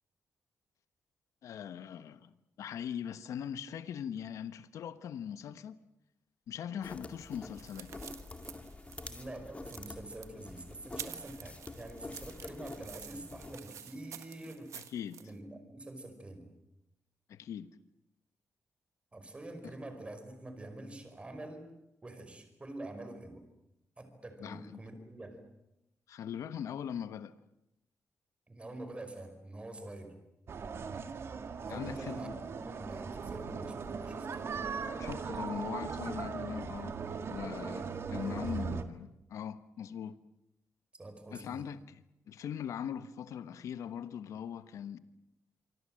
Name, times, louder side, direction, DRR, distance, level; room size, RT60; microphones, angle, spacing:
voice 1, 1.4-2.3 2.6-5.8 6.5-7.9 14.7-15.2 17.3-17.7 19.6-19.7 24.4-24.8 26.1-27.3 31.7-32.4 35.0-37.0 37.3-40.2 41.3-45.0, left 8 dB, 90° left, 1.2 m, -41 dB
sound 1, 6.8-13.6, left 3 dB, 25° left, 2.3 m, -47 dB
sound 2, 7.2-15.3, right 9 dB, 85° right, 1.7 m, -49 dB
voice 2, 9.1-14.8 15.2-16.5 19.1-21.7 22.0-23.4 24.0-25.4 28.5-30.2 31.6-34.6 37.6-38.6 40.9-41.7, right 1 dB, 20° right, 5.1 m, -46 dB
sound 3, 30.5-38.8, right 5 dB, 55° right, 1.9 m, -39 dB
26.5 x 24.5 x 7.7 m
cardioid pair, 110°, 5 cm